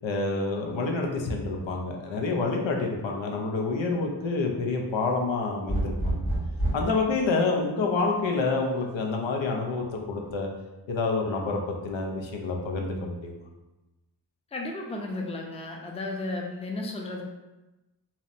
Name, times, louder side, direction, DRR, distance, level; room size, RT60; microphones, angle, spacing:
voice 1, 0.0-6.2 6.7-10.5 10.9-13.4, left 3 dB, 90° left, 1 dB, 0.5 m, -28 dB
sound 1, 5.7-7.0 8.6-9.1, right 1 dB, 50° left, 1.4 m, -28 dB
voice 2, 14.5-17.2, left 2 dB, 15° left, 0 dB, 0.4 m, -34 dB
2.7 x 2.0 x 2.5 m, 1.0 s
wide cardioid pair, 45°, 44 cm